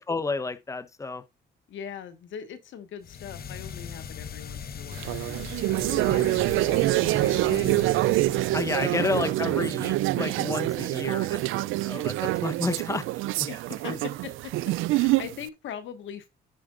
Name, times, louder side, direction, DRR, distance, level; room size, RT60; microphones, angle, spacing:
voice 1, 0.1-1.2 8.5-13.1 13.4-13.5, left 3 dB, 15° left, 0.8 m, -31 dB
voice 2, 1.7-5.2 5.8-7.9 8.8-9.5 13.5-16.3, left 8 dB, 75° left, 1.5 m, -41 dB
sound 1, 3.0-8.9, left 7 dB, 50° left, 1.0 m, -40 dB
sound 2, 4.9-15.4, right 17 dB, 85° right, 0.4 m, -26 dB
14.5 x 5.2 x 2.4 m
cardioid pair, 90°, 20 cm